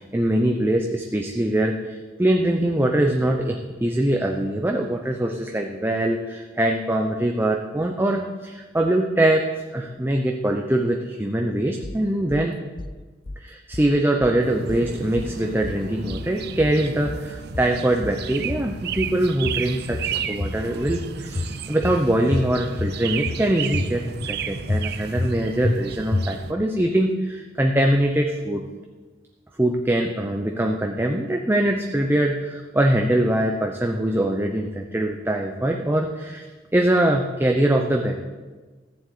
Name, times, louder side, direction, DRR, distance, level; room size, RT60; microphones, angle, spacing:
voice 1, 0.1-9.5 9.7-12.6 13.4-28.6 29.6-36.4 36.7-38.2, right 1 dB, 10° right, 2 dB, 0.8 m, -23 dB
sound 1, 11.8-12.4 12.8-13.4 13.7-14.4 14.7-15.4 15.6-16.3 16.6-17.3 17.5-18.2 18.5-19.2 19.4-20.1 20.4-21.1 21.4-22.0 22.3-23.0 23.3-23.9 24.2-24.3 24.7-25.3 25.6-25.8 26.1-26.6, left 2 dB, 25° left, 0.4 m, -29 dB
sound 2, 14.4-26.5, right 6 dB, 60° right, 0.7 m, -33 dB
14.5 x 7.6 x 8.5 m, 1.3 s
head